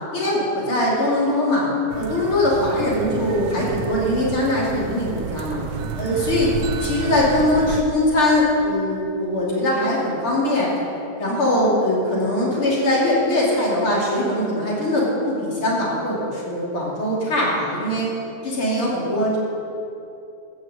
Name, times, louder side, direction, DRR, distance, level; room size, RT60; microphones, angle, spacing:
voice 1, 0.1-1.7 2.0-5.6 6.0-6.5 6.8-10.8 11.2-18.1 18.4-19.4, left 1 dB, 45° left, -5 dB, 3.4 m, -21 dB
sound 1, 1.9-7.8, right 7 dB, 75° right, 1.4 m, -30 dB
14.5 x 6.4 x 7.8 m, 2.7 s
omnidirectional pair, 3.4 m